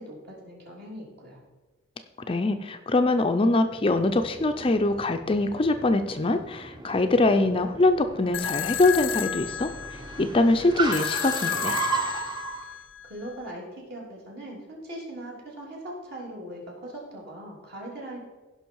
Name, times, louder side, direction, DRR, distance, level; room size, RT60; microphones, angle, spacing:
voice 1, 0.0-1.4 12.6-12.7 13.0-18.2, right 1 dB, 55° right, -3 dB, 3.2 m, -40 dB
voice 2, 2.3-9.7 10.2-11.8, left 2 dB, 25° left, 7 dB, 0.5 m, -23 dB
Car, 3.7-12.6, right 4 dB, 20° right, 0.9 m, -35 dB
sound 1, 8.3-13.4, left 9 dB, 70° left, 0.6 m, -33 dB
16.0 x 5.6 x 4.6 m, 1.2 s
head